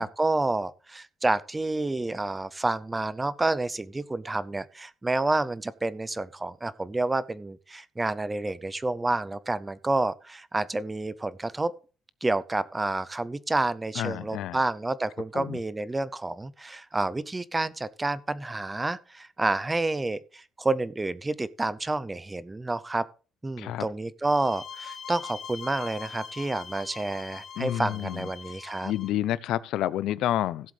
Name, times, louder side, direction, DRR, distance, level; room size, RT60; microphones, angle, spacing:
voice 1, 0.0-11.7 12.2-23.1 23.4-28.9, right 2 dB, 15° right, 0.5 m, -29 dB
voice 2, 14.0-14.6 15.3-15.6 23.6-23.9 27.6-28.3 28.8-30.7, left 13 dB, 85° left, 0.6 m, -29 dB
sound 1, 24.2-29.1, left 7 dB, 45° left, 1.3 m, -42 dB
16.5 x 7.7 x 3.3 m
cardioid pair, 145°, 0 cm